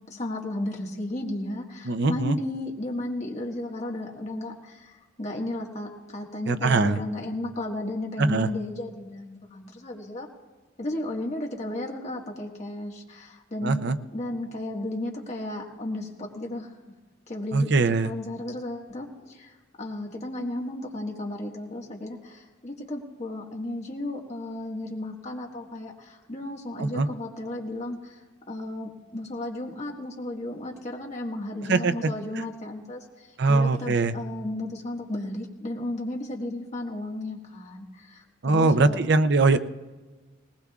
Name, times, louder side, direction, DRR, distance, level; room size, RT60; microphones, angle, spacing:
voice 1, 0.1-10.3 10.8-13.8 14.1-16.7 17.3-28.2 28.5-39.0, left 1 dB, 35° left, 0 dB, 1.7 m, -34 dB
voice 2, 1.9-2.4 6.5-7.0 8.2-8.5 13.6-14.0 17.5-18.1 26.8-27.1 31.7-32.1 32.4-32.5 33.4-34.1 38.4-39.6, right 3 dB, 60° right, 11 dB, 0.6 m, -22 dB
19.5 x 19.0 x 2.4 m, 1.3 s
head